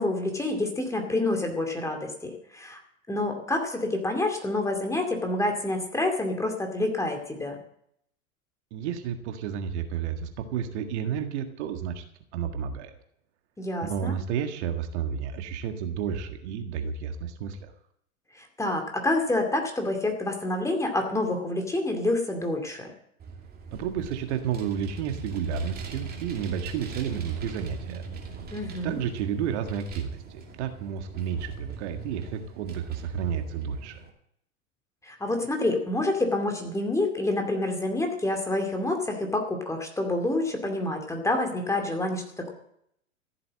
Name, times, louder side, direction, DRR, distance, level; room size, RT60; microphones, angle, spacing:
voice 1, 0.0-2.8 3.1-7.6 13.6-14.1 18.4-22.9 28.5-29.0 35.0-42.5, left 2 dB, 5° left, 3 dB, 2.4 m, -28 dB
voice 2, 8.7-12.0 12.3-12.9 13.8-17.7 23.7-28.0 28.8-34.0, right 8 dB, 50° right, 6 dB, 1.7 m, -31 dB
Vehicle, 23.2-34.1, right 5 dB, 20° right, 2.7 m, -41 dB
14.5 x 7.9 x 7.6 m, 0.72 s
hypercardioid pair, 105°, 42 cm